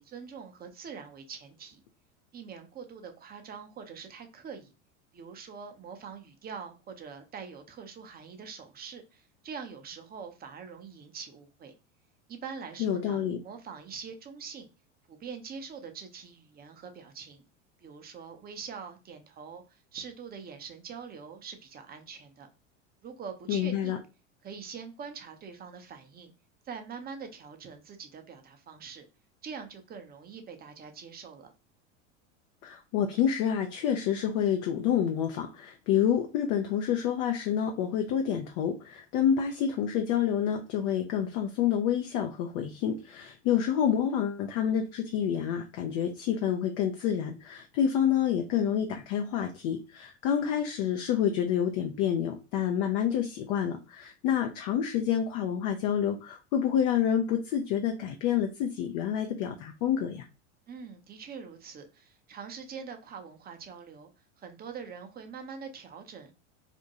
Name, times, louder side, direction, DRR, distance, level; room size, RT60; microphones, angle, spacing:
voice 1, 0.0-1.8 2.3-4.7 5.1-11.7 12.3-14.7 15.1-17.4 17.8-22.5 23.0-24.0 24.4-26.3 26.6-29.0 29.4-31.5 60.7-64.1 64.4-66.3, right 6 dB, 25° right, 0.6 m, -44 dB
voice 2, 12.8-13.4 23.5-24.0 32.6-60.3, left 9 dB, 55° left, 0.5 m, -28 dB
2.6 x 2.1 x 2.8 m
hypercardioid pair, 95°, 37 cm